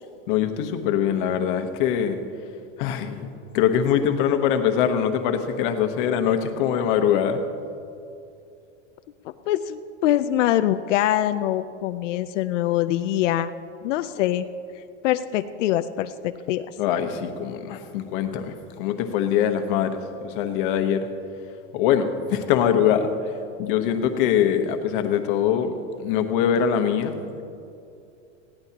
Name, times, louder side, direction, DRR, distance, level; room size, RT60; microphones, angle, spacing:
voice 1, 0.3-2.2 2.8-3.3 3.5-7.4 16.8-21.1 21.7-27.1, left 8 dB, 45° left, 6 dB, 1.1 m, -23 dB
voice 2, 9.5-13.5 13.8-14.5 15.0-16.7, left 13 dB, 80° left, 10 dB, 0.6 m, -23 dB
20.5 x 16.0 x 2.9 m, 2.6 s
supercardioid pair, 180°, 37 cm